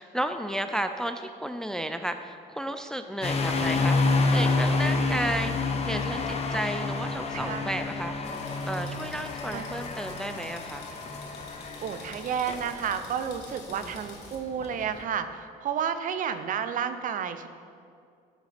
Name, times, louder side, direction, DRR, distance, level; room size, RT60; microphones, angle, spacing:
voice 1, 0.0-5.5 5.9-8.2 8.6-10.9 13.7-14.0, right 1 dB, 5° left, 8 dB, 0.4 m, -33 dB
sound 1, 3.2-15.0, left 3 dB, 40° left, 1.0 m, -29 dB
voice 2, 7.3-7.8 9.5-9.7 11.8-17.5, right 7 dB, 50° right, 10 dB, 0.6 m, -31 dB
sound 2, 8.2-14.4, left 5 dB, 80° left, 1.5 m, -49 dB
12.5 x 6.4 x 3.4 m, 2.3 s
cardioid pair, 110°, 17 cm